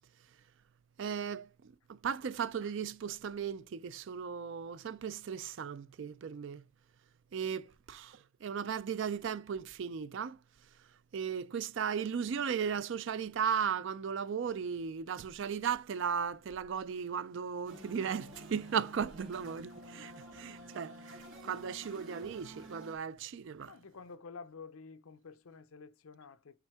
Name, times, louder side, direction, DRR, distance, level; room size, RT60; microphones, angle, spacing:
voice 1, 1.0-6.6 7.3-10.4 11.1-23.7, right 7 dB, 60° right, 0.4 m, -36 dB
sound 1, 17.6-23.0, equal, 75° right, 1.9 m, -50 dB
voice 2, 23.7-26.6, left 5 dB, 80° left, 0.6 m, -50 dB
8.2 x 3.4 x 3.5 m
head